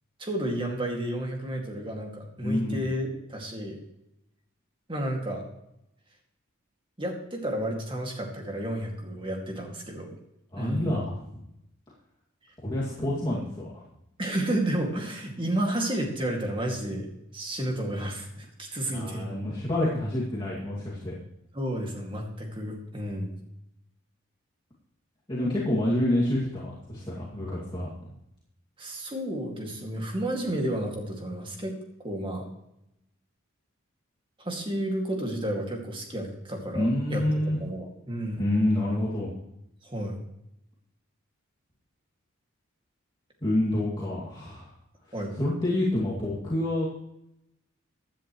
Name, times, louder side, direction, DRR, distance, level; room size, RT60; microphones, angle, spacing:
voice 1, 0.2-3.8 4.9-5.4 7.0-10.2 10.6-11.0 14.2-17.1 17.3-19.3 21.5-23.3 28.8-31.7 32.0-32.4 34.4-37.2 37.6-38.4 39.8-40.2 45.1-45.3, right 1 dB, 25° right, 1 dB, 2.2 m, -31 dB
voice 2, 2.4-2.9 10.5-11.4 12.6-13.8 18.9-21.2 25.3-28.2 36.7-37.6 38.4-39.3 43.4-44.7 45.4-46.9, left 1 dB, 20° left, -7 dB, 2.3 m, -28 dB
16.0 x 10.5 x 3.2 m, 0.82 s
head